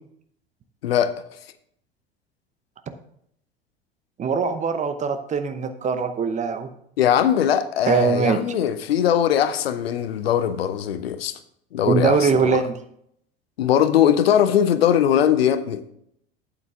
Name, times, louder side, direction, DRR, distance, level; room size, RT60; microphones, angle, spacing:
voice 1, 0.8-1.1 7.0-11.4 11.7-12.6 13.6-15.8, left 9 dB, 70° left, 0.7 m, -20 dB
voice 2, 4.2-6.7 7.9-8.4 11.9-12.8, right 5 dB, 25° right, 0.8 m, -22 dB
8.9 x 7.9 x 3.6 m
figure-of-eight pair, 75°, 31 cm